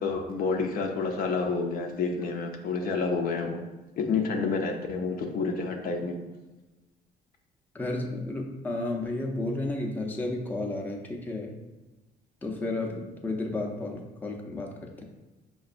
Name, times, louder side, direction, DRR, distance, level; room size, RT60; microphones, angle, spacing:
voice 1, 0.0-3.6 4.0-6.2, left 4 dB, 60° left, 3 dB, 0.5 m, -29 dB
voice 2, 7.7-11.5 12.4-15.0, left 2 dB, 10° left, 0 dB, 0.5 m, -32 dB
5.8 x 2.3 x 2.5 m, 1.1 s
cardioid pair, 110°, 17 cm